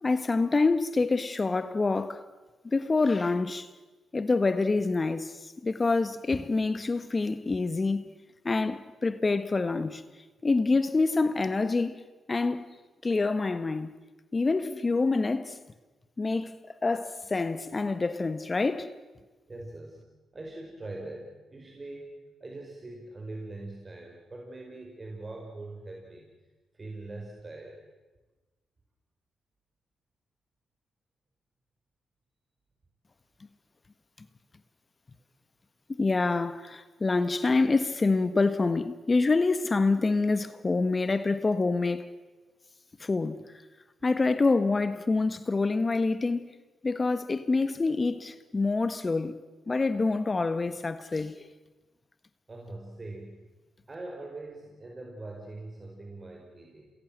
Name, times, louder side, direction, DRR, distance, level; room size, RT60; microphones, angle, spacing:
voice 1, 0.0-2.2 2.6-3.7 4.1-8.1 8.4-10.0 10.4-12.0 12.3-12.7 13.0-13.9 14.3-15.6 16.2-18.9 35.9-42.1 43.0-43.6 44.0-46.5 46.8-49.4 49.7-51.5, left 3 dB, 35° left, 1.5 m, -26 dB
voice 2, 19.5-20.0 20.3-26.3 26.7-27.8 52.5-53.4 53.9-56.9, right 2 dB, 35° right, 5.5 m, -42 dB
28.5 x 21.0 x 7.7 m
supercardioid pair, 45°, 0 cm